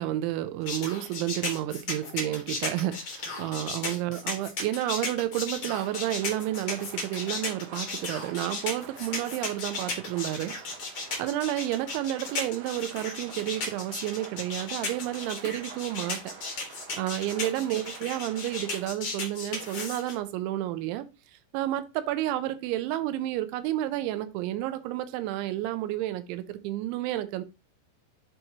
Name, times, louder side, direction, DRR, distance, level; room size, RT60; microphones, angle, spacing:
voice 1, 0.0-10.5 11.2-16.2 17.0-21.1 21.5-27.4, right 14 dB, 90° right, 3.1 m, -31 dB
sound 1, 0.7-20.1, left 3 dB, 70° left, 1.2 m, -35 dB
sound 2, 5.6-18.9, right 7 dB, 65° right, 3.1 m, -48 dB
10.0 x 4.2 x 2.9 m
omnidirectional pair, 5.2 m